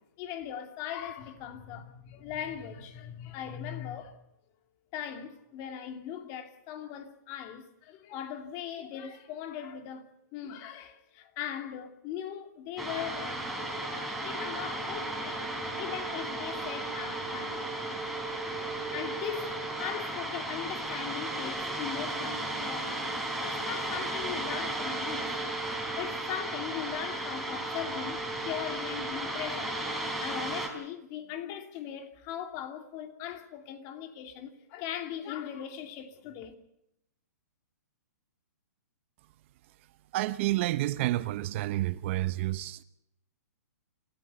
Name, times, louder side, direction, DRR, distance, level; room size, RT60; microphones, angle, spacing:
voice 1, 0.2-4.2 4.9-13.5 14.2-17.7 18.9-19.5 19.8-23.1 23.4-25.6 26.0-36.5, left 10 dB, 35° left, 2.7 m, -39 dB
sound 1, 12.8-30.7, right 2 dB, ahead, 3.9 m, -35 dB
voice 2, 40.1-42.8, right 16 dB, 45° right, 0.9 m, -29 dB
27.5 x 14.0 x 6.9 m
hypercardioid pair, 135°, 9 cm